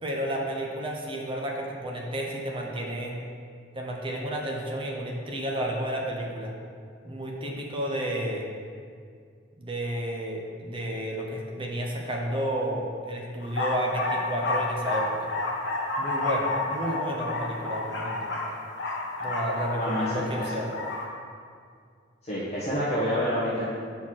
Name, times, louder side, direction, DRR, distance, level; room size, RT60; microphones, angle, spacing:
voice 1, 0.0-3.2 3.7-6.5 7.0-8.5 9.6-15.3 16.0-18.3 19.2-20.7, right 1 dB, 30° right, -1 dB, 0.9 m, -31 dB
sound 1, 13.4-21.1, left 2 dB, 70° left, 1.1 m, -30 dB
voice 2, 19.7-20.3 22.3-23.6, equal, 35° left, -11 dB, 1.4 m, -28 dB
5.7 x 4.3 x 6.2 m, 2.2 s
head